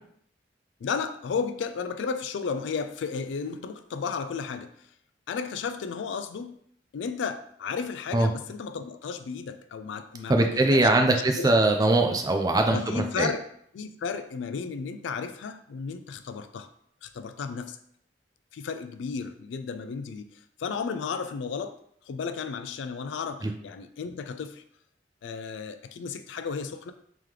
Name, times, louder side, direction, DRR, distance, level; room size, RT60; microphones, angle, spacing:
voice 1, 0.8-4.7 5.3-6.6 6.9-11.6 12.7-13.4 13.7-16.7 17.0-17.8 18.5-21.8 22.1-24.6 25.2-26.9, left 5 dB, 70° left, 10 dB, 0.3 m, -33 dB
voice 2, 10.3-13.3 23.4-23.5, right 2 dB, 20° right, 4 dB, 0.4 m, -22 dB
3.7 x 2.9 x 3.3 m, 0.67 s
head